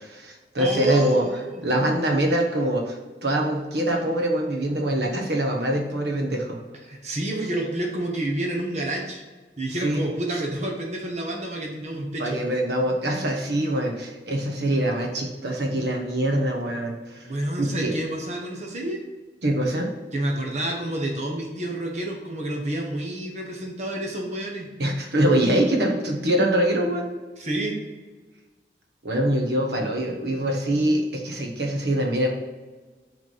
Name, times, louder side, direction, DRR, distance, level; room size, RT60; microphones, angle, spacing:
voice 1, 0.0-1.3 1.6-6.6 9.8-10.0 10.3-10.4 12.2-17.3 17.6-17.9 19.4-19.9 24.8-27.2 29.0-32.3, right 1 dB, 75° right, 1 dB, 1.2 m, -24 dB
voice 2, 0.6-1.6 6.9-9.2 9.6-12.4 17.2-19.0 20.1-24.7 27.4-27.8, right 1 dB, 40° right, 0 dB, 1.2 m, -29 dB
6.3 x 3.6 x 5.5 m, 1.3 s
head